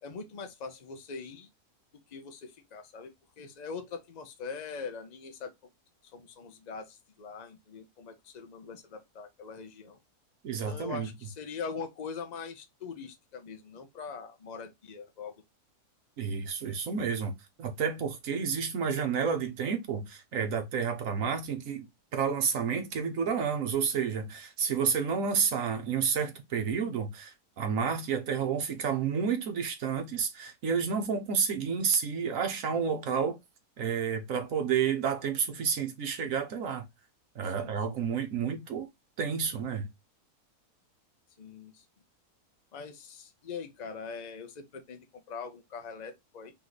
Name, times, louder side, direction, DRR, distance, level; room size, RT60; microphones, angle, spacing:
voice 1, 0.0-1.5 1.9-5.5 6.1-10.0 10.5-15.3 37.4-37.7 41.4-41.8 42.7-46.5, left 5 dB, 40° left, 0.6 m, -42 dB
voice 2, 10.4-11.1 16.2-17.3 17.6-33.4 33.8-36.9 37.3-38.9 39.2-39.9, right 6 dB, 60° right, 1.2 m, -30 dB
3.6 x 3.1 x 3.9 m
omnidirectional pair, 1.7 m